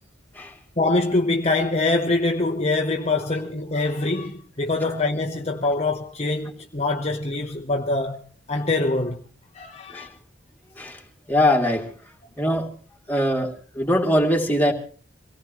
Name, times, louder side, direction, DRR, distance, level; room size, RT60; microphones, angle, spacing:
voice 1, 0.8-8.2 8.5-9.2 9.5-10.1, left 2 dB, 35° left, 1.1 m, -24 dB
voice 2, 11.3-11.9 12.4-12.7 13.1-14.7, left 1 dB, 10° left, 2.8 m, -22 dB
25.0 x 18.0 x 3.1 m
head